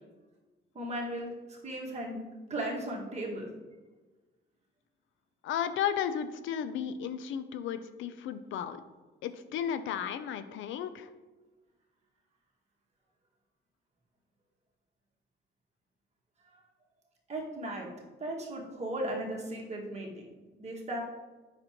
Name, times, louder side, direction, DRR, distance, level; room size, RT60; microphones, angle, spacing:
voice 1, 0.7-2.2 2.5-3.5 16.5-16.6 17.3-17.9 18.2-20.3 20.6-21.0, right 1 dB, 35° right, -2 dB, 1.7 m, -36 dB
voice 2, 5.4-8.8 9.2-11.1, left 8 dB, 75° left, 12 dB, 0.4 m, -34 dB
7.7 x 6.0 x 2.9 m, 1.2 s
cardioid pair, 90°, 20 cm